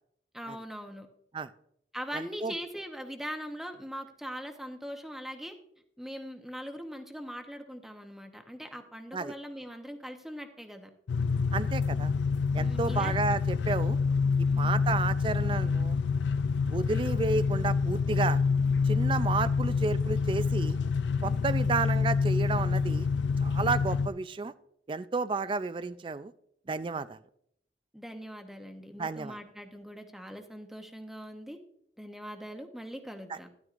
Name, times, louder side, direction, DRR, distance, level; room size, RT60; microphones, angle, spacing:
voice 1, 0.3-1.1 1.9-5.5 6.0-10.9 12.6-13.1 14.5-14.9 21.2-21.6 27.9-31.6 32.0-33.5, equal, ahead, 5 dB, 0.8 m, -41 dB
voice 2, 2.1-2.5 9.1-9.3 11.5-12.1 12.5-14.0 14.6-16.0 16.7-18.4 18.8-20.8 21.2-23.1 23.4-24.5 24.9-26.3 26.7-27.2 29.0-29.4 33.3-33.4, right 4 dB, 30° right, 15 dB, 0.3 m, -31 dB
sound 1, 11.1-24.1, left 5 dB, 90° left, 0.4 m, -27 dB
12.5 x 11.0 x 2.5 m, 0.73 s
head